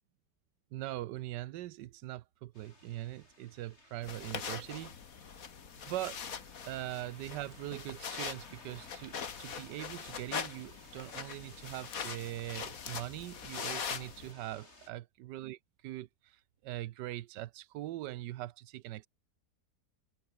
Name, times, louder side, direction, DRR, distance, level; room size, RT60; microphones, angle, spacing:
voice 1, 0.7-4.9 5.8-6.2 6.6-15.6 15.8-19.1, right 15 dB, 80° right, 1.3 m, -42 dB
sound 1, 2.5-14.9, left 2 dB, 40° left, 5.3 m, -58 dB
sound 2, 4.0-14.3, left 6 dB, 55° left, 1.9 m, -42 dB
omnidirectional pair, 1.8 m